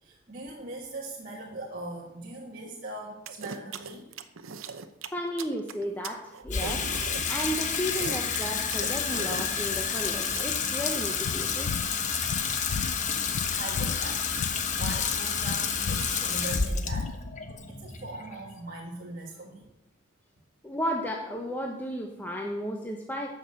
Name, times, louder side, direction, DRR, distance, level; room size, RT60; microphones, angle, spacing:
voice 1, 0.0-4.1 13.5-17.3 17.7-19.6, right 2 dB, 40° right, -4 dB, 1.6 m, -40 dB
sound 1, 3.3-10.4, right 5 dB, 75° right, 0.7 m, -39 dB
voice 2, 5.1-6.9 7.3-11.7 20.6-23.3, equal, 10° left, 1 dB, 0.8 m, -33 dB
Water tap faucet / Sink (filling or washing), 6.4-18.8, left 6 dB, 35° left, 1.0 m, -30 dB
sound 2, 11.2-17.5, left 5 dB, 75° left, 0.4 m, -35 dB
12.5 x 6.1 x 7.6 m, 0.95 s
head